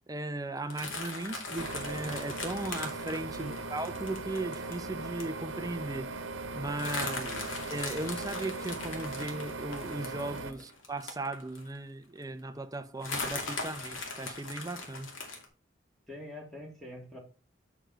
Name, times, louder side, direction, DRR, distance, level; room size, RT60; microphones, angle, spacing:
voice 1, 0.1-6.1 6.5-7.3 7.7-15.1, right 2 dB, 20° right, 0.7 m, -37 dB
sound 1, 0.7-4.7 5.2-5.4 5.6-5.7 5.9-6.2 6.8-11.8 12.2-12.3 13.0-15.4, left 3 dB, 85° left, 2.3 m, -39 dB
sound 2, 1.6-10.5, right 3 dB, 80° right, 1.1 m, -39 dB
voice 2, 16.1-17.2, left 1 dB, ahead, 2.8 m, -45 dB
7.1 x 6.1 x 5.1 m
head